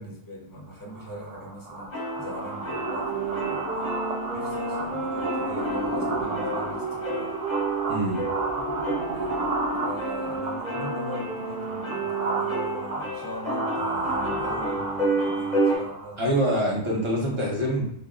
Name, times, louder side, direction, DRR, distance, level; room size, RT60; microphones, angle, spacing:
voice 1, 0.0-3.9 4.3-7.4 9.1-9.4 9.8-16.2, right 1 dB, 25° left, -5 dB, 0.5 m, -40 dB
sound 1, 0.9-16.2, right 3 dB, 70° right, 0.3 m, -32 dB
sound 2, 1.9-15.8, right 1 dB, 40° left, 0.8 m, -32 dB
sound 3, 3.0-13.0, right 3 dB, 45° right, 1.1 m, -33 dB
voice 2, 7.9-8.2 16.2-17.9, equal, 30° right, -3 dB, 0.7 m, -25 dB
3.4 x 2.2 x 2.4 m, 0.70 s
omnidirectional pair, 1.2 m